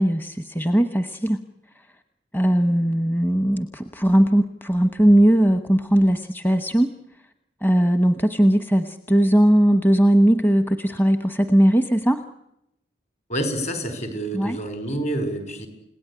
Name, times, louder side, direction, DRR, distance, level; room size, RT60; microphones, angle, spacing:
voice 1, 0.0-1.4 2.3-6.9 7.6-12.2 14.3-14.6, right 1 dB, 10° left, 9 dB, 1.1 m, -19 dB
voice 2, 13.3-15.7, right 1 dB, 40° left, 9 dB, 5.2 m, -28 dB
30.0 x 18.0 x 9.9 m, 0.81 s
head